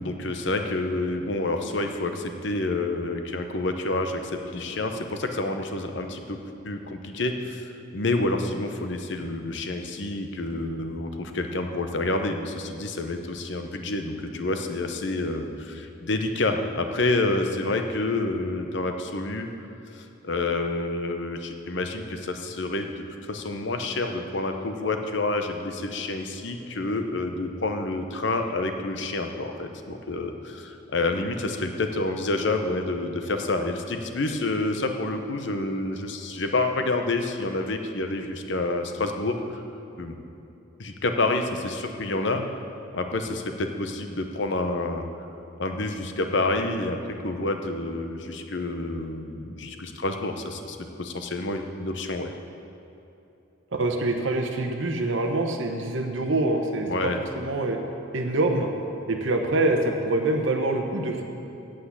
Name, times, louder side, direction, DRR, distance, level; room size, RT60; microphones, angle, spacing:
voice 1, 0.0-6.4 6.6-19.5 19.9-39.6 40.0-40.1 40.8-42.4 42.9-45.0 45.6-52.3 56.9-57.2, left 2 dB, 60° left, 6 dB, 0.8 m, -28 dB
voice 2, 53.7-57.1 57.4-57.8 58.1-58.7 59.1-61.2, right 2 dB, 65° right, 2 dB, 0.9 m, -25 dB
8.4 x 7.6 x 8.4 m, 2.9 s
head